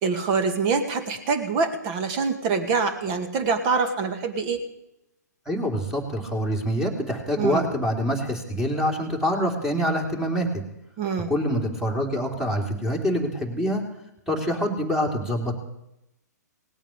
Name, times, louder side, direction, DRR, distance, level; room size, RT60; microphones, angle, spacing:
voice 1, 0.0-4.6 7.4-7.7 11.0-11.3, right 5 dB, 30° right, 8 dB, 2.2 m, -25 dB
voice 2, 5.5-10.5 11.3-13.8 14.3-15.6, equal, 5° right, 2 dB, 3.0 m, -25 dB
18.5 x 8.9 x 8.4 m, 0.85 s
figure-of-eight pair, 120°, 10 cm